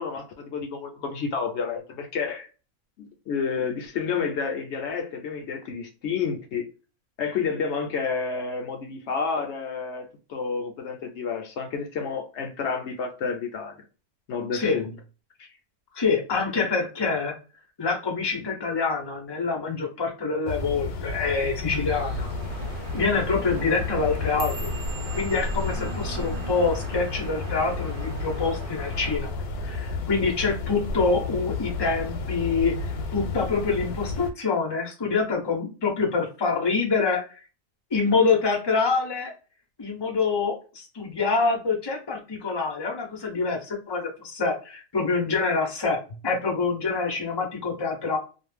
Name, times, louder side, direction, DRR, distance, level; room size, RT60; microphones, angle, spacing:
voice 1, 0.0-2.5 3.0-6.7 7.2-13.8 14.3-14.9 15.4-15.5, left 5 dB, 65° left, 0.7 m, -30 dB
voice 2, 15.9-17.4 17.8-22.3 22.9-24.7 25.1-29.3 29.6-37.4 37.9-39.3 39.8-48.2, left 4 dB, 40° left, 0.3 m, -26 dB
sound 1, 20.5-34.3, left 3 dB, 80° left, 1.1 m, -32 dB
sound 2, 21.9-29.2, right 3 dB, 35° right, 0.5 m, -41 dB
sound 3, 24.0-28.4 28.7-29.1 29.5-29.9 30.3-30.5 31.1-31.5 31.9-32.7 33.1-33.5 34.3-34.4, right 3 dB, 65° right, 0.8 m, -43 dB
2.5 x 2.0 x 3.2 m
omnidirectional pair, 1.6 m